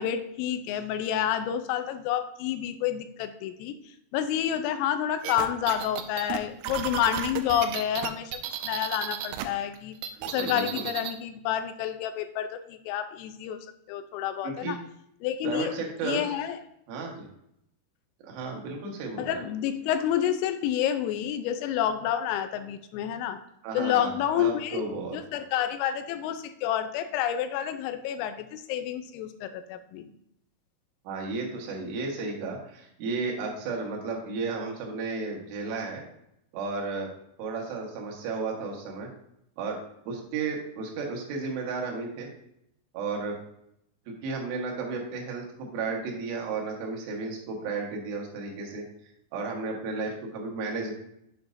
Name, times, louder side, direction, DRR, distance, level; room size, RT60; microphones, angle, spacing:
voice 1, 0.0-3.8 4.1-9.9 10.3-13.6 13.9-14.8 15.2-15.7 16.0-16.6 19.2-23.4 23.8-30.1, left 10 dB, 85° left, 9 dB, 3.2 m, -29 dB
sound 1, 5.2-9.4 9.7-11.2, right 10 dB, 85° right, 2.9 m, -33 dB
voice 2, 10.1-10.9 14.4-14.8 15.4-16.3 16.9-17.3 18.2-19.5 23.6-25.2 31.0-36.0 36.5-37.1 37.4-39.1 39.6-39.8 40.1-42.3 42.9-43.4 44.1-48.8 49.3-50.9, right 4 dB, 65° right, -1 dB, 3.1 m, -33 dB
7.6 x 7.1 x 2.6 m, 0.75 s
omnidirectional pair, 6.0 m